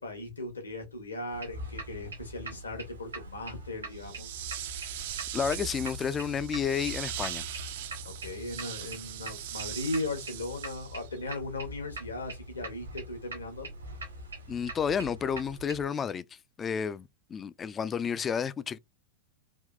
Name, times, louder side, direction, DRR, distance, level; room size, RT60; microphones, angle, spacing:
voice 1, 0.0-4.3 8.0-13.7, left 2 dB, 75° left, 1.2 m, -37 dB
sound 1, 1.3-15.9, right 1 dB, 75° right, 1.2 m, -43 dB
sound 2, 3.9-11.2, right 12 dB, 55° right, 0.4 m, -40 dB
voice 2, 5.3-7.5 14.5-16.2 16.6-18.8, left 7 dB, 20° left, 0.3 m, -31 dB
3.5 x 2.7 x 2.3 m
figure-of-eight pair, 90°, 0 cm